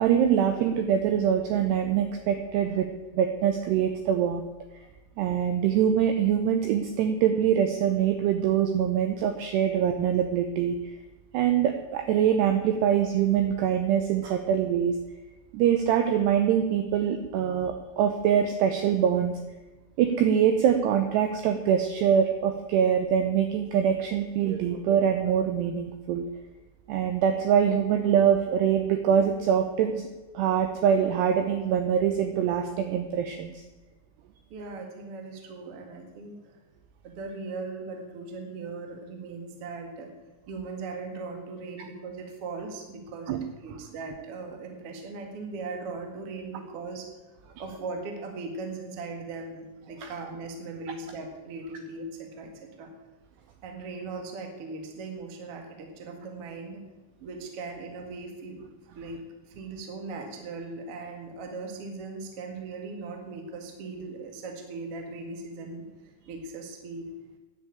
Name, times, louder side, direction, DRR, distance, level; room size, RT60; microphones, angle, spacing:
voice 1, 0.0-2.9 3.1-4.5 5.2-10.9 11.3-15.0 15.5-19.3 20.0-26.2 26.9-30.1 30.3-33.6 43.3-43.4, right 8 dB, 90° right, 7 dB, 2.3 m, -24 dB
voice 2, 34.5-36.6 37.0-40.1 40.5-47.1 47.6-52.9 53.6-56.8 57.2-58.7 58.9-59.2 59.5-67.1, right 3 dB, 65° right, 3 dB, 1.4 m, -39 dB
10.5 x 8.2 x 8.6 m, 1.1 s
omnidirectional pair, 5.8 m